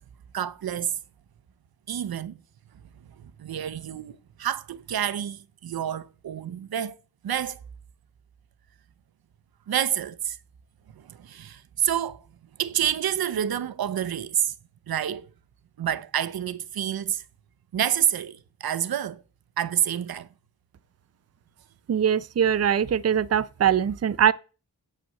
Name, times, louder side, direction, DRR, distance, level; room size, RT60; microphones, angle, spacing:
voice 1, 0.3-0.9 1.9-2.4 3.4-7.0 7.2-7.6 9.7-10.4 11.0-12.2 12.6-14.5 14.9-15.3 15.8-17.2 17.7-19.2 19.6-20.3, right 10 dB, 90° right, 0.7 m, -28 dB
voice 2, 21.9-24.3, right 8 dB, 45° right, 0.5 m, -22 dB
8.8 x 5.8 x 7.4 m
wide cardioid pair, 70°, 35 cm